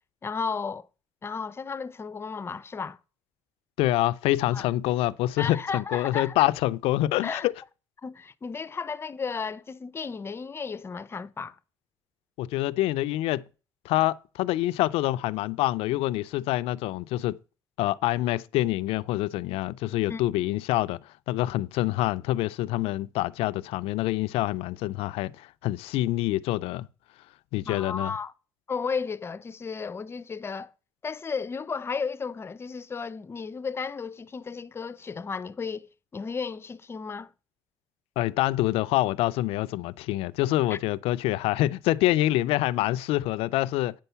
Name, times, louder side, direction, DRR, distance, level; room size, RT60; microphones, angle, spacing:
voice 1, 0.2-0.9 1.2-3.0 4.5-4.7 5.4-6.5 7.2-7.5 8.0-11.6 20.1-20.2 27.7-28.3 28.7-30.7 31.0-37.3 40.7-40.8, left 5 dB, 25° left, 0.6 m, -34 dB
voice 2, 3.8-7.5 12.4-13.4 13.8-17.4 17.8-21.0 21.3-26.9 27.5-28.1 38.2-43.9, left 16 dB, 80° left, 0.5 m, -26 dB
8.9 x 5.7 x 6.8 m
cardioid pair, 115°, 10 cm